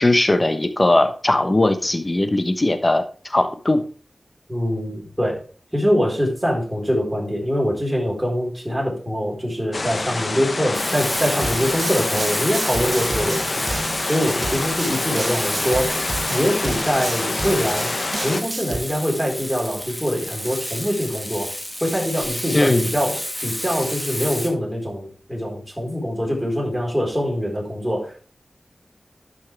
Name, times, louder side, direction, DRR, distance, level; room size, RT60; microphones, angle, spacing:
voice 1, 0.0-3.8 22.5-22.8, left 2 dB, 30° left, 9 dB, 1.1 m, -19 dB
voice 2, 4.5-5.4 5.7-13.6 14.1-16.0 16.3-17.9 18.2-21.5 21.8-28.1, equal, 5° right, -2 dB, 4.5 m, -24 dB
sound 1, 9.7-18.4, left 3 dB, 55° left, 0.7 m, -27 dB
Frying (food), 10.7-24.5, equal, 10° left, 2.1 m, -30 dB
sound 2, 11.1-18.8, right 3 dB, 55° right, 1.2 m, -31 dB
12.0 x 5.7 x 3.4 m, 0.41 s
wide cardioid pair, 70°, 0 cm